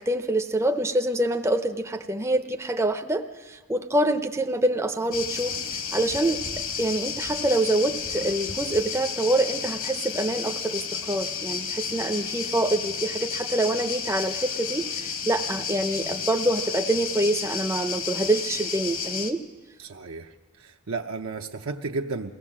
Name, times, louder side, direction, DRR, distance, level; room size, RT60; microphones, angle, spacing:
voice 1, 0.0-5.6 5.9-19.4, right 1 dB, 15° right, 6 dB, 0.6 m, -26 dB
sound 1, 5.1-19.3, left 6 dB, 60° left, 1.4 m, -32 dB
voice 2, 19.8-20.3 20.6-22.3, right 3 dB, 65° right, 2 dB, 0.7 m, -33 dB
22.5 x 16.5 x 7.4 m, 1.3 s
head